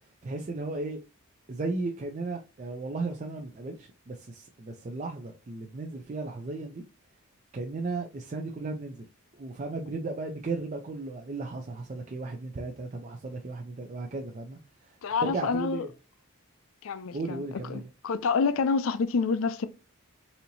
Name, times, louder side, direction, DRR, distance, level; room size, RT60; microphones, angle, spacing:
voice 1, 0.2-1.0 1.5-6.8 7.5-9.0 9.3-14.6 14.8-14.9 15.2-15.9 17.1-17.8, right 3 dB, 35° right, 0.4 m, -35 dB
voice 2, 15.0-15.9 16.8-19.7, left 5 dB, 65° left, 0.4 m, -28 dB
4.2 x 2.8 x 2.6 m
head